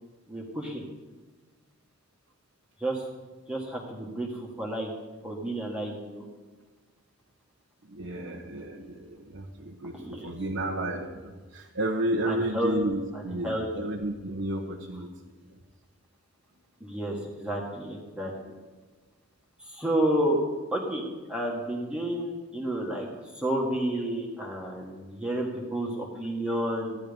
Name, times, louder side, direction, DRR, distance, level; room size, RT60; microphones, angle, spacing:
voice 1, 0.3-0.8 2.8-3.1 3.5-4.9 5.2-6.2 9.9-10.3 12.2-12.8 13.1-13.9 16.8-18.3 19.6-20.4 20.7-27.0, right 1 dB, 5° right, -3 dB, 1.9 m, -31 dB
voice 2, 7.9-15.1, right 1 dB, 65° right, -1 dB, 1.3 m, -32 dB
16.0 x 11.5 x 5.3 m, 1.4 s
head